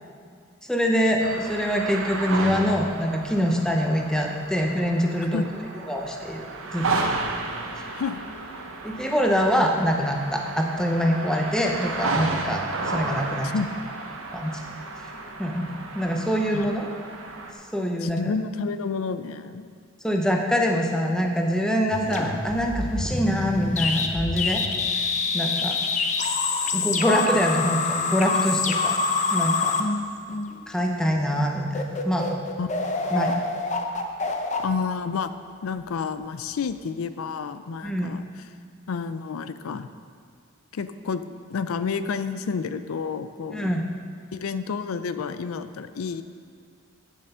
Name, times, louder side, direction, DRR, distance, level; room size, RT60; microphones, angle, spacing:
voice 1, 0.6-5.4 5.9-6.5 6.7-7.1 7.8-7.9 8.8-13.5 14.3-14.6 15.4-15.7 15.9-16.9 17.7-18.3 20.0-24.6 25.3-25.8 26.7-29.0 29.3-29.7 30.7-32.3 33.1-33.3 37.8-38.1 43.5-43.9, equal, 5° left, 1 dB, 0.7 m, -24 dB
sound 1, 1.2-17.5, right 3 dB, 75° right, 1.0 m, -33 dB
voice 2, 18.0-19.7 32.6-32.7 33.0-33.4 34.6-35.3 35.6-38.5 38.9-39.9 40.7-43.7 44.3-46.2, left 5 dB, 90° left, 11 dB, 0.4 m, -30 dB
sound 2, 21.9-30.8 31.3-31.4 31.7-35.6, left 3 dB, 35° left, 0.6 m, -26 dB
9.1 x 7.3 x 5.5 m, 2.2 s
head